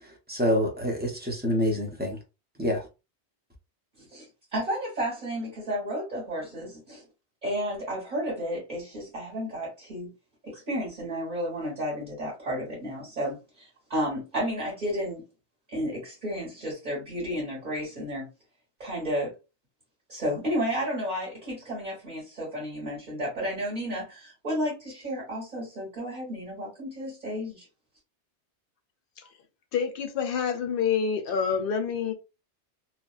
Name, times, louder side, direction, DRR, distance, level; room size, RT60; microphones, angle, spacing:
voice 1, 0.3-2.2 2.6-2.8, left 1 dB, 10° right, 0.6 m, -26 dB
voice 2, 4.0-7.0 7.4-10.1 10.4-15.2 15.7-18.3 18.8-19.3 20.1-27.7, equal, 40° right, 1.6 m, -32 dB
voice 3, 29.7-32.1, left 7 dB, 60° left, 0.7 m, -27 dB
2.9 x 2.4 x 2.3 m
omnidirectional pair, 1.2 m